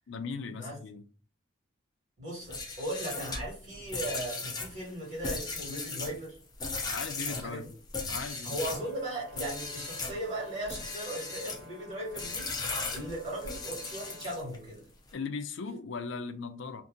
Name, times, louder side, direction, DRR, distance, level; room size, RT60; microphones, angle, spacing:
voice 1, 0.1-1.0 6.9-7.7 8.1-8.6 15.1-16.8, left 4 dB, 70° left, 0.4 m, -38 dB
voice 2, 2.2-6.4 6.9-7.0 7.2-7.6 8.4-14.9, right 1 dB, 35° right, 1.6 m, -38 dB
sound 1, 2.4-8.9 9.3-10.2 10.6-11.6 12.1-14.6, left 3 dB, 20° left, 0.6 m, -37 dB
Brass instrument, 8.5-14.4, left 2 dB, 65° right, 0.8 m, -52 dB
2.7 x 2.5 x 3.7 m
head